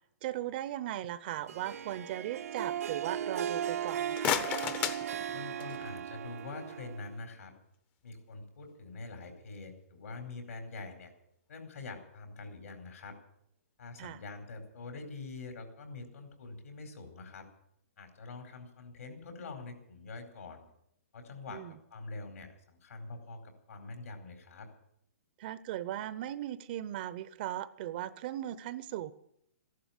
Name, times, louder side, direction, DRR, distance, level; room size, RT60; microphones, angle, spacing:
voice 1, 0.2-4.5 14.0-14.2 21.5-21.7 25.4-29.1, right 13 dB, 40° right, 16 dB, 0.7 m, -38 dB
Harp, 1.5-7.3, right 9 dB, 70° right, 0.8 m, -37 dB
sound 1, 3.9-5.9, left 9 dB, 20° left, 0.7 m, -34 dB
voice 2, 5.3-7.5 8.0-11.1 11.5-13.2 13.8-17.5 18.0-20.6 21.1-24.7, left 3 dB, 75° left, 6 dB, 4.6 m, -45 dB
14.5 x 11.5 x 8.9 m, 0.77 s
hypercardioid pair, 155°, 8 cm